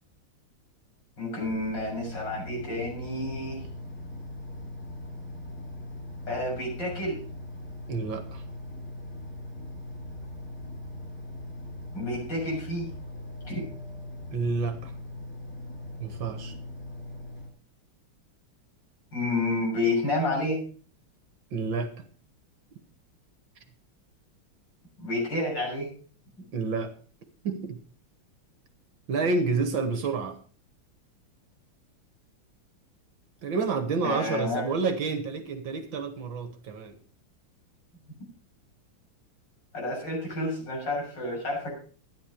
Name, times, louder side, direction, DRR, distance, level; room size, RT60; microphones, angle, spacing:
voice 1, 1.2-3.6 6.3-7.2 11.9-12.9 13.4-13.7 19.1-20.6 25.0-25.9 34.0-34.7 39.7-41.7, left 2 dB, 55° left, -2 dB, 7.6 m, -30 dB
sound 1, 1.4-17.5, left 1 dB, 5° left, 2.6 m, -40 dB
voice 2, 7.9-8.4 12.0-12.1 14.3-14.9 16.0-16.5 21.5-21.9 26.5-26.9 27.4-27.8 29.1-30.4 33.4-36.9, right 4 dB, 65° right, 8 dB, 2.1 m, -29 dB
13.0 x 10.5 x 5.0 m, 0.42 s
omnidirectional pair, 2.3 m